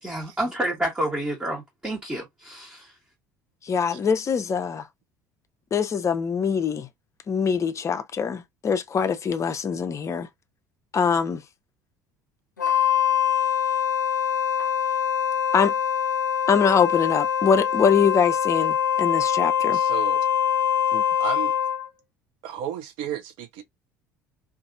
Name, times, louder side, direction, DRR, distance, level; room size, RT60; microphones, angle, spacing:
voice 1, 0.0-2.9, right 1 dB, 10° right, 1.1 m, -29 dB
voice 2, 3.6-4.9 5.7-6.9 7.3-10.3 10.9-11.4 15.5-15.7 16.5-19.8 20.9-21.0, left 6 dB, 30° left, 0.5 m, -23 dB
Wind instrument woodwind instrument, 12.6-21.9, left 9 dB, 90° left, 0.4 m, -23 dB
voice 3, 19.7-20.3 21.2-21.5 22.4-23.6, right 9 dB, 60° right, 0.7 m, -33 dB
2.6 x 2.4 x 2.4 m
figure-of-eight pair, 60°, 10 cm